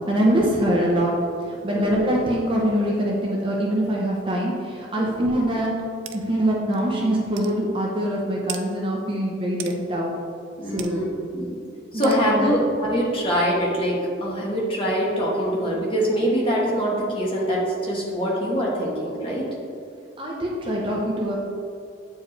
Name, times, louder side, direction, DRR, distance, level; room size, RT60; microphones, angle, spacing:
voice 1, 0.1-1.1 1.5-5.7 6.1-10.1 10.7-11.0 11.9-12.5 20.2-21.4, right 1 dB, 25° right, -3 dB, 0.7 m, -23 dB
voice 2, 1.7-2.1 5.0-5.3 10.6-11.6 11.9-19.5, equal, 25° left, -5 dB, 1.3 m, -24 dB
sound 1, 6.1-6.2 6.7-6.8 7.4-7.5 8.5-8.6 9.6-9.8 10.8-10.9 12.0-12.2, right 10 dB, 75° right, 0.5 m, -34 dB
7.8 x 4.7 x 3.3 m, 2.5 s
head